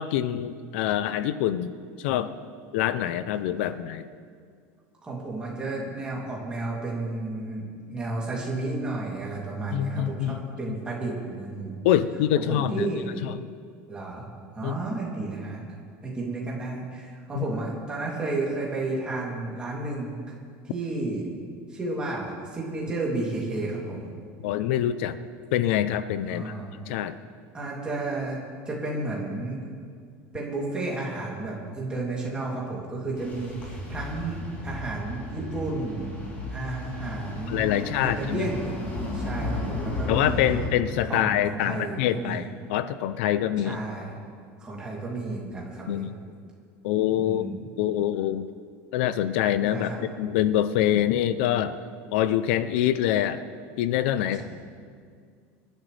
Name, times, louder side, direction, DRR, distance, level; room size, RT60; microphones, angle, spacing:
voice 1, 0.0-1.7 2.0-2.3 2.7-4.0 9.7-10.8 11.8-12.9 13.2-13.4 14.6-14.8 17.4-17.5 24.4-25.2 25.5-26.5 26.9-27.2 37.5-38.4 40.1-43.8 45.9-46.1 46.8-47.5 47.8-48.5 48.9-51.8 52.1-53.4 53.8-54.4, left 11 dB, 70° left, 12 dB, 0.6 m, -25 dB
voice 2, 5.0-11.8 12.3-13.0 13.9-14.2 14.5-15.6 16.0-20.1 20.7-21.3 21.7-24.1 26.3-26.7 27.5-29.8 30.3-36.1 36.5-38.7 39.1-40.6 41.1-42.5 43.6-44.1 44.6-46.1 47.2-47.6 49.7-50.0, right 2 dB, 15° right, -4 dB, 2.9 m, -32 dB
sound 1, 33.2-40.7, left 2 dB, 25° left, 3.4 m, -34 dB
25.5 x 11.5 x 3.4 m, 2.1 s
cardioid pair, 175°, 7 cm